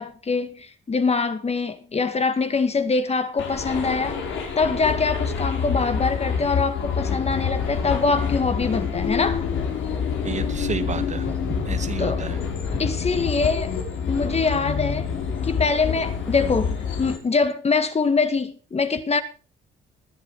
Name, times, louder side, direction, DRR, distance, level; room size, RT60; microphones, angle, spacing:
voice 1, 0.0-4.2 4.6-9.5 12.0-12.3 12.8-13.8 14.1-15.1 15.4-19.2, left 4 dB, 30° left, 1.9 m, -24 dB
sound 1, 3.4-17.2, left 6 dB, 75° left, 4.6 m, -27 dB
voice 2, 9.9-12.4, right 5 dB, 35° right, 1.4 m, -31 dB
20.5 x 7.8 x 5.0 m
cardioid pair, 90°, 20 cm